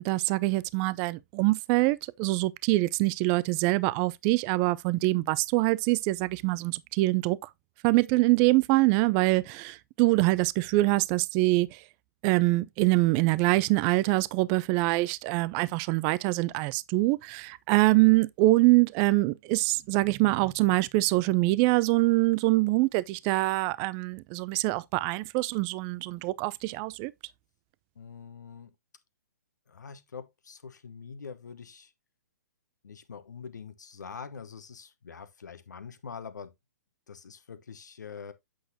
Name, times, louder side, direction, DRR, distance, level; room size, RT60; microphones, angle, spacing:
voice 1, 0.0-7.4 7.8-11.8 12.2-27.1, right 20 dB, 30° right, 0.4 m, -24 dB
voice 2, 27.9-28.7 29.7-31.9 32.8-36.5 37.1-38.3, left 6 dB, 80° left, 1.1 m, -44 dB
8.0 x 6.3 x 2.7 m
hypercardioid pair, 130°, 9 cm